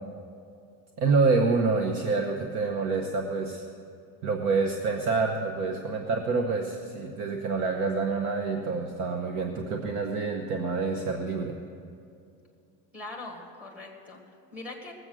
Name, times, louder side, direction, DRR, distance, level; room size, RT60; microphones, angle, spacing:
voice 1, 1.0-3.6 4.2-11.5, right 4 dB, 50° right, 3 dB, 0.9 m, -27 dB
voice 2, 12.9-14.9, left 2 dB, 5° right, -1 dB, 1.6 m, -42 dB
19.5 x 7.9 x 6.2 m, 2.5 s
cardioid pair, 180°, 38 cm